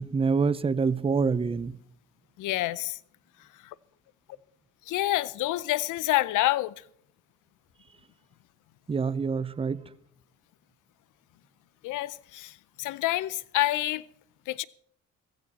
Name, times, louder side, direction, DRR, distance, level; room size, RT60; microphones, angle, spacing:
voice 1, 0.0-1.8 8.9-9.8, right 5 dB, 20° right, 0.6 m, -26 dB
voice 2, 2.4-3.0 4.9-6.7 11.8-12.5 12.8-14.0 14.5-14.6, left 16 dB, 85° left, 0.6 m, -27 dB
15.5 x 15.0 x 4.2 m
cardioid pair, 90°, 30 cm